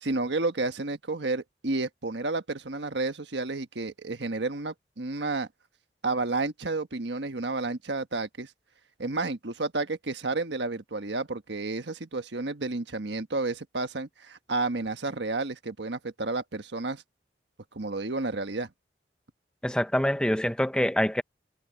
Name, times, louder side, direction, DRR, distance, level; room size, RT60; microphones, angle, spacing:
voice 1, 0.0-5.5 6.0-8.5 9.0-17.0 17.7-18.7, right 3 dB, 85° right, 1.4 m, -31 dB
voice 2, 19.6-21.2, equal, 5° left, 0.9 m, -25 dB
head